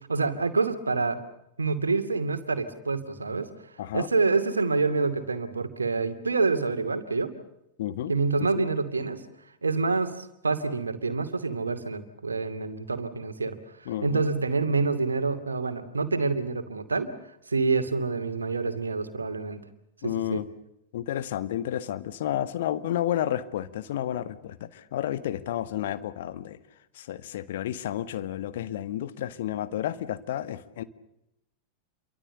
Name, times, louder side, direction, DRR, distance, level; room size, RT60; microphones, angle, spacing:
voice 1, 0.1-1.2 1.6-3.5 3.9-7.3 8.1-9.2 9.6-13.6 14.0-17.1 17.5-19.6 20.0-20.4, right 4 dB, 75° right, 2.5 m, -27 dB
voice 2, 3.8-4.1 7.8-8.1 8.4-8.6 13.8-14.2 20.0-20.5 20.9-26.6 26.9-30.8, left 11 dB, 55° left, 1.6 m, -31 dB
28.0 x 24.0 x 6.8 m
figure-of-eight pair, 90°, 0 cm